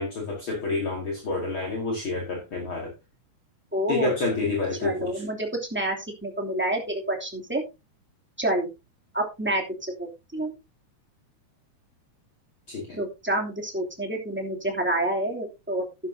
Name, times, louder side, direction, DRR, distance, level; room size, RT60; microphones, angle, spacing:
voice 1, 0.0-2.9 3.9-5.2 12.7-13.0, left 3 dB, 45° left, -1 dB, 2.8 m, -28 dB
voice 2, 3.7-4.1 4.8-6.0 6.2-7.6 8.4-8.7 9.1-10.5 12.9-15.9, right 1 dB, 5° right, 1 dB, 2.4 m, -28 dB
12.0 x 11.0 x 2.7 m, 0.26 s
omnidirectional pair, 3.4 m